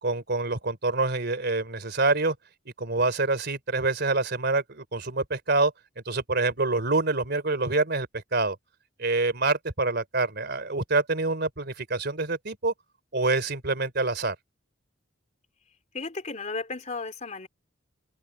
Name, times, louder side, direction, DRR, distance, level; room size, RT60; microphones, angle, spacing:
voice 1, 0.0-2.3 2.8-5.7 6.0-8.6 9.0-12.7 13.1-14.3, right 3 dB, 55° right, 3.4 m, -26 dB
voice 2, 15.9-17.5, left 3 dB, 35° left, 3.2 m, -34 dB
open air
head